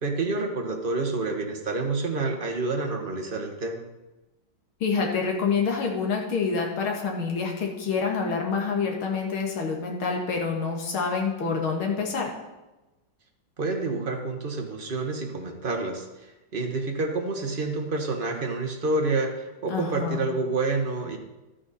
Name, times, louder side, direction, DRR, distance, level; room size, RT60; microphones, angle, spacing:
voice 1, 0.0-3.8 13.6-21.2, right 3 dB, 30° right, 3 dB, 1.2 m, -28 dB
voice 2, 4.8-12.3 19.7-20.3, left 5 dB, 85° left, 0 dB, 2.6 m, -27 dB
12.5 x 8.9 x 4.2 m, 1.1 s
omnidirectional pair, 2.3 m